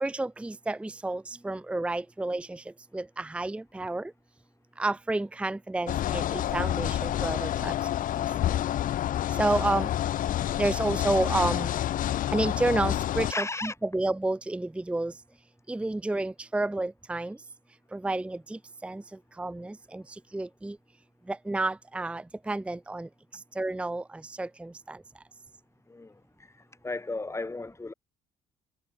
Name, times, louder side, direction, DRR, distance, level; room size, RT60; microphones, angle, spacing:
voice 1, 0.0-2.6 2.9-4.1 4.8-7.7 9.4-9.9 10.6-11.7 12.3-15.1 15.7-17.4 17.9-19.0 19.4-20.0 20.3-20.8 21.3-23.1 23.6-24.0 24.4-25.0, right 2 dB, 5° right, 0.7 m, -30 dB
sound 1, 5.9-13.3, left 12 dB, 55° left, 0.7 m, -28 dB
voice 2, 13.3-13.8 25.9-27.9, left 3 dB, 15° left, 4.4 m, -35 dB
cardioid pair, 110°, 17 cm